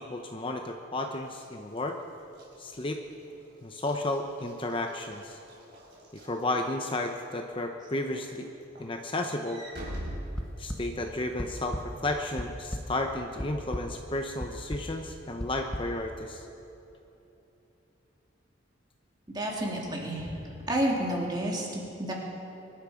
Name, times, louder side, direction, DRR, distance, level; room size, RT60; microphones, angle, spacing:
voice 1, 0.0-2.0 2.6-3.0 3.6-5.4 6.1-8.5 8.8-9.6 10.6-16.4, left 2 dB, 25° left, 4 dB, 0.8 m, -33 dB
Walk footsteps / Slam, 1.3-7.0 7.5-7.8 8.1-11.1, right 1 dB, 60° right, 5.0 m, -44 dB
sound 1, 10.4-10.8 11.4-11.8 12.2-12.8 13.4-13.8 14.4-14.8 15.4-15.8, equal, 5° left, 1.1 m, -33 dB
voice 2, 19.3-20.4 20.7-22.1, right 1 dB, 20° right, -2 dB, 2.7 m, -30 dB
23.5 x 12.0 x 5.0 m, 2.9 s
head